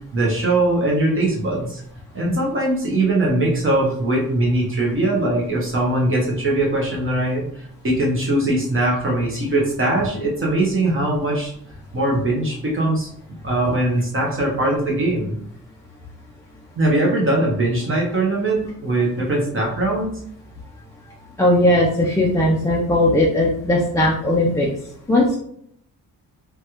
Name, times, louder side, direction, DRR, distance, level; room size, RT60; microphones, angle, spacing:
voice 1, 0.1-1.8 2.1-11.5 11.9-13.1 13.4-15.3 16.8-20.2, right 2 dB, 35° right, -3 dB, 0.8 m, -21 dB
voice 2, 21.4-24.7 25.1-25.4, left 1 dB, 10° left, -4 dB, 0.3 m, -18 dB
3.1 x 2.3 x 2.9 m, 0.68 s
wide cardioid pair, 145°, 35 cm